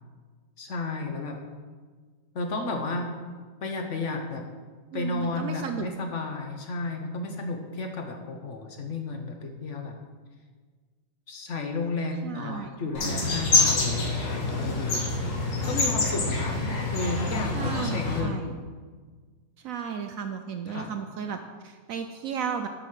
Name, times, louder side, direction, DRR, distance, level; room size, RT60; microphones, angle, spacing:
voice 1, 0.6-1.4 2.3-3.1 3.6-4.4 4.9-9.9 11.3-15.3 15.6-18.5 20.7-20.9, left 3 dB, 55° left, 4 dB, 0.8 m, -32 dB
voice 2, 4.9-5.9 12.2-12.7 13.0-13.4 17.5-18.6 19.6-21.4 21.6-22.7, right 7 dB, 75° right, 6 dB, 0.7 m, -34 dB
sound 1, 12.9-18.2, left 2 dB, 80° left, 2.1 m, -26 dB
7.7 x 5.9 x 6.4 m, 1.5 s
omnidirectional pair, 2.0 m